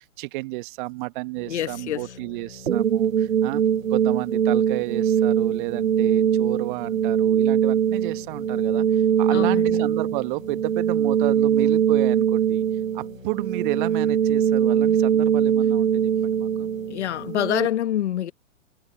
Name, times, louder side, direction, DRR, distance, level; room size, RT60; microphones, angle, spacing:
voice 1, 0.0-3.6 3.9-12.6 12.9-16.7, right 23 dB, 40° right, 1.4 m, -31 dB
sound 1, 1.4-17.3, left 4 dB, 90° left, 3.2 m, -45 dB
voice 2, 1.5-2.0 9.3-9.8 16.9-18.3, left 11 dB, 60° left, 1.7 m, -26 dB
sound 2, 2.7-17.7, right 9 dB, 90° right, 0.6 m, -22 dB
figure-of-eight pair, 115°, 38 cm